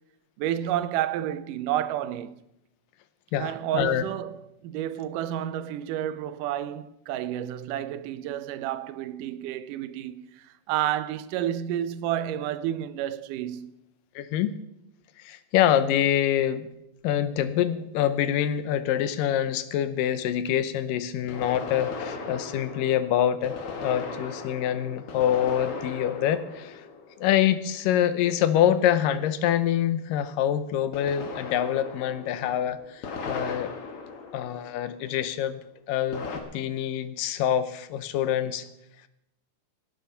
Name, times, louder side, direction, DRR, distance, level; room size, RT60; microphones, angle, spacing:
voice 1, 0.4-2.4 3.4-13.7, right 11 dB, 80° right, 2.2 m, -30 dB
voice 2, 3.3-4.0 14.2-14.5 15.2-16.7 17.0-23.6 23.8-26.8 27.2-33.7 34.3-35.6 35.9-36.3 36.5-38.7, left 10 dB, 90° left, 2.5 m, -25 dB
sound 1, 17.4-17.5 21.3-27.8 30.9-35.2 36.1-36.4, left 4 dB, 50° left, 2.1 m, -38 dB
18.0 x 9.1 x 5.7 m
omnidirectional pair, 3.8 m